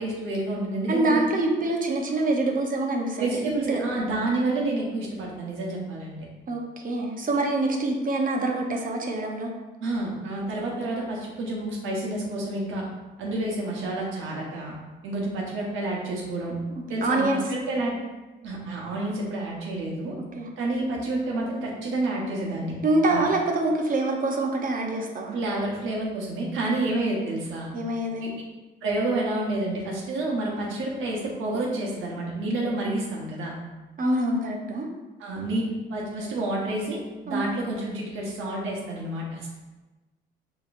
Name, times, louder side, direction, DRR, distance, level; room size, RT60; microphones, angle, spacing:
voice 1, 0.0-1.2 3.2-6.3 9.8-12.8 13.2-14.7 15.0-16.6 16.9-17.9 18.4-20.1 20.6-22.7 23.1-23.2 25.3-27.7 28.2-28.3 28.8-33.5 35.2-37.0 37.2-39.5, right 2 dB, 85° right, -2 dB, 1.1 m, -29 dB
voice 2, 0.9-3.4 3.7-3.8 6.5-9.5 17.0-17.4 20.4-20.5 22.8-25.4 27.7-28.3 34.0-34.9 37.3-37.4, right 2 dB, 45° right, 1 dB, 0.7 m, -25 dB
4.9 x 3.0 x 2.5 m, 1.1 s
cardioid pair, 90°, 20 cm